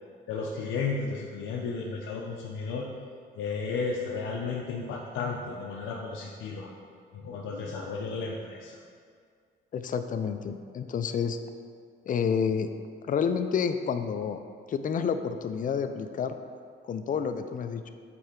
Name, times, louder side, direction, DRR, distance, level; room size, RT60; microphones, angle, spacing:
voice 1, 0.3-2.9 3.4-6.7 7.1-8.7, left 4 dB, 80° left, -2 dB, 0.7 m, -33 dB
voice 2, 9.7-11.4 12.1-12.7 13.1-14.4 14.7-16.4 16.8-17.9, left 6 dB, 45° left, 9 dB, 0.5 m, -29 dB
8.3 x 4.3 x 3.7 m, 2.1 s
cardioid pair, 90°, 20 cm